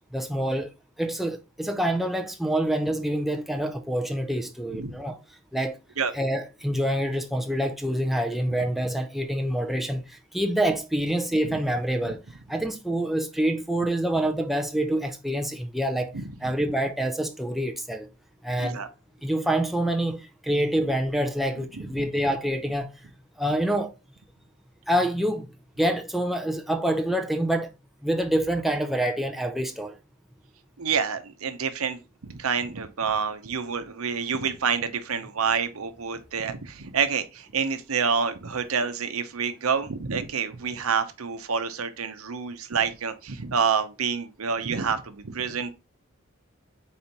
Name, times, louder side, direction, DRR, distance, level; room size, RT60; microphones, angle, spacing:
voice 1, 0.1-0.7 1.0-5.2 5.5-5.8 6.1-12.2 12.5-18.1 18.4-18.8 19.2-22.9 23.4-23.9 24.9-25.5 25.8-27.7 28.0-30.0, right 1 dB, ahead, 0.5 m, -26 dB
voice 2, 30.8-45.7, right 6 dB, 85° right, 0.8 m, -28 dB
4.5 x 4.2 x 5.2 m
head